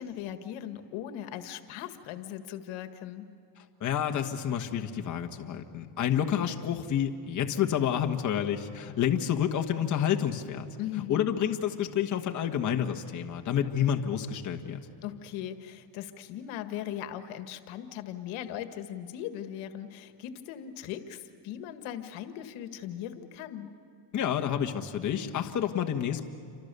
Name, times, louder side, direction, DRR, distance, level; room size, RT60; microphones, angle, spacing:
voice 1, 0.0-3.3 10.8-11.3 15.0-23.7, left 11 dB, 75° left, 9 dB, 1.8 m, -39 dB
voice 2, 3.6-10.7 11.1-14.8 24.1-26.2, left 9 dB, 35° left, 4 dB, 1.6 m, -29 dB
29.0 x 25.5 x 6.9 m, 2.6 s
cardioid pair, 130°, 48 cm